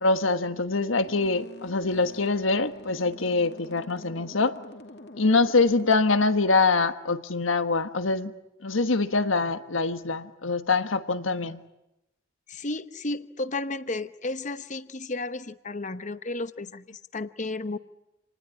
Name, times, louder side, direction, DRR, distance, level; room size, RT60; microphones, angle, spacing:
voice 1, 0.0-4.6 5.1-8.3 8.6-11.6, left 3 dB, 85° left, 10 dB, 1.4 m, -24 dB
sound 1, 1.0-6.0, left 2 dB, 55° left, 2.6 m, -46 dB
voice 2, 12.5-17.8, left 2 dB, 40° left, 12 dB, 1.0 m, -33 dB
28.0 x 19.5 x 9.7 m, 0.93 s
head